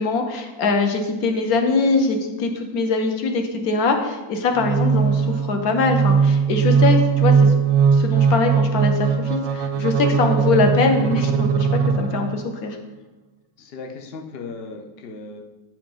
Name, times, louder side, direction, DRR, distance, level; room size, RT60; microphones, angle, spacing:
voice 1, 0.0-7.5 7.9-11.7 12.0-12.8, left 3 dB, 60° left, 4 dB, 1.1 m, -22 dB
sound 1, 4.6-12.5, right 6 dB, 85° right, 1.3 m, -19 dB
voice 2, 13.6-15.4, left 3 dB, 80° left, 2 dB, 0.5 m, -36 dB
8.7 x 4.8 x 3.8 m, 1.1 s
omnidirectional pair, 2.0 m